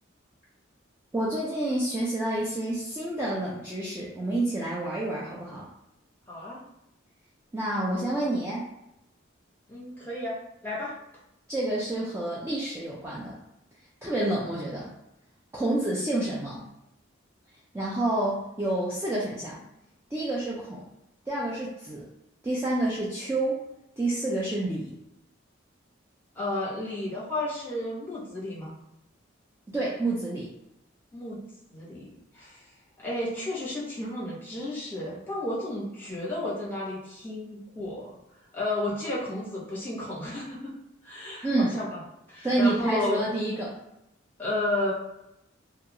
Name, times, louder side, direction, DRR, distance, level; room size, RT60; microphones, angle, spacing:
voice 1, 1.1-5.7 7.5-8.7 11.5-13.4 14.0-14.9 15.5-16.7 17.7-19.6 20.1-20.8 21.3-22.1 22.4-23.6 24.0-24.9 29.7-30.5 41.4-41.7 42.4-43.7, right 1 dB, 15° right, -7 dB, 0.3 m, -28 dB
voice 2, 6.3-6.6 9.7-10.9 26.3-28.7 31.1-31.4 31.7-32.6 33.0-38.1 38.5-40.7 41.0-42.0 42.3-43.2 44.4-44.9, left 1 dB, 10° left, -6 dB, 0.9 m, -32 dB
2.3 x 2.3 x 2.8 m, 0.86 s
head